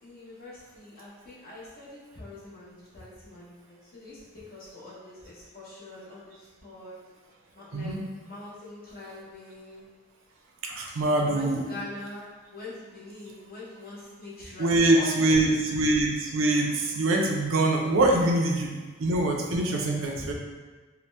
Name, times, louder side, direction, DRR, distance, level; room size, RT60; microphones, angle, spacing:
voice 1, 0.0-6.9 7.5-7.9 8.3-9.8 11.2-12.2 12.5-15.6 20.1-20.3, left 2 dB, 45° left, -8 dB, 0.8 m, -43 dB
voice 2, 10.6-11.6 14.6-18.7 19.0-20.3, right 2 dB, 70° right, 1 dB, 0.4 m, -24 dB
2.7 x 2.1 x 3.2 m, 1.3 s
head